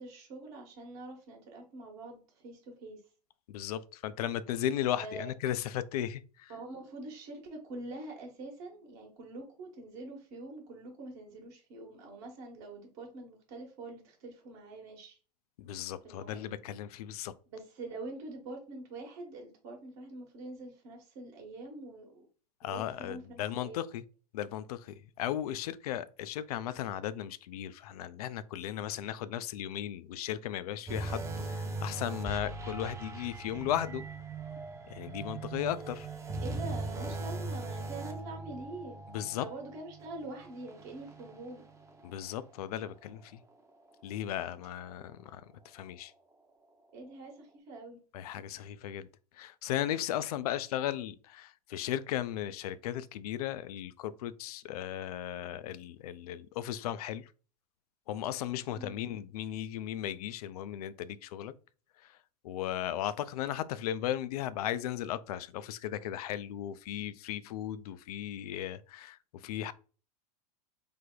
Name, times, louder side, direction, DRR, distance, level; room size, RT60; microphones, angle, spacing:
voice 1, 0.0-3.0 5.0-5.3 6.5-15.2 16.0-16.5 17.5-22.3 22.6-23.8 36.4-39.0 39.4-41.6 46.9-48.0 58.7-59.0, right 2 dB, 50° right, 1.1 m, -45 dB
voice 2, 3.5-6.5 15.6-17.3 22.6-24.0 24.3-34.1 34.9-36.1 39.1-39.5 42.0-43.4 44.0-46.1 48.1-49.1 49.3-57.3 58.1-61.5 62.0-62.2 62.4-69.7, left 11 dB, 65° left, 0.4 m, -36 dB
sound 1, 30.9-42.3 42.7-42.9 43.5-43.6, right 3 dB, 15° right, 0.6 m, -40 dB
3.3 x 2.1 x 3.7 m
hypercardioid pair, 95°, 21 cm